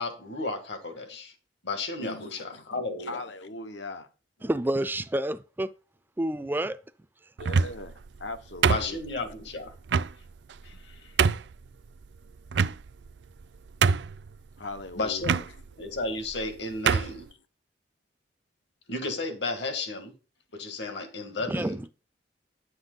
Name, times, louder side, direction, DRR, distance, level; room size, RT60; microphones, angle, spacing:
voice 1, 0.0-1.3 1.6-3.2 8.7-9.7 10.6-11.1 15.0-15.5 15.8-17.3 18.9-20.1 20.5-21.8, left 3 dB, 70° left, 2.0 m, -33 dB
voice 2, 2.0-2.7 3.0-4.1 7.4-9.0 14.6-15.2 17.0-17.1, left 2 dB, 85° left, 1.2 m, -39 dB
voice 3, 4.4-5.7 6.2-6.8 21.5-21.9, right 1 dB, 10° right, 0.3 m, -29 dB
sound 1, 7.4-7.9 8.6-9.3 9.9-10.1 10.7-10.8 11.2-11.5 12.5-13.1 13.4-13.5 13.8-14.3 15.2-15.5 16.3-16.5 16.9-17.2, right 6 dB, 70° right, 0.4 m, -24 dB
10.0 x 7.9 x 4.0 m
head